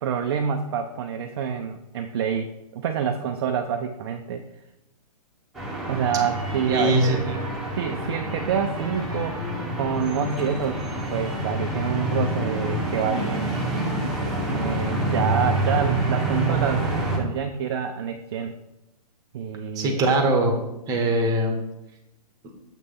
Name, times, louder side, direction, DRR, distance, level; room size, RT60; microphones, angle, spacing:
voice 1, 0.0-4.4 5.9-7.3 7.7-9.4 9.7-10.8 11.1-13.5 14.4-16.9 17.1-18.5 19.3-20.0, right 7 dB, 40° right, 4 dB, 0.5 m, -27 dB
sound 1, 5.5-17.2, right 1 dB, ahead, 1.2 m, -27 dB
voice 2, 6.7-7.4 19.8-20.5 20.9-21.5, right 2 dB, 15° right, 3 dB, 1.1 m, -21 dB
7.3 x 3.2 x 5.6 m, 0.92 s
hypercardioid pair, 145°, 21 cm